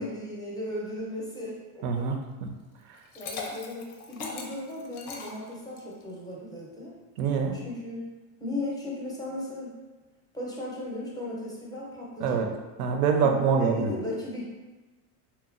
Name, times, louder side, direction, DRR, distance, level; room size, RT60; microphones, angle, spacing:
voice 1, 0.0-2.1 3.1-6.9 7.5-8.1 8.4-9.7 10.3-12.4 13.2-14.5, left 1 dB, 10° left, -5 dB, 0.5 m, -36 dB
voice 2, 1.8-2.5 7.2-7.6 12.2-12.5 12.8-13.9, right 6 dB, 85° right, 4 dB, 0.5 m, -25 dB
Liquid, 2.9-6.0, left 4 dB, 90° left, 0.6 m, -39 dB
2.9 x 2.2 x 2.4 m, 1.2 s
supercardioid pair, 125°, 42 cm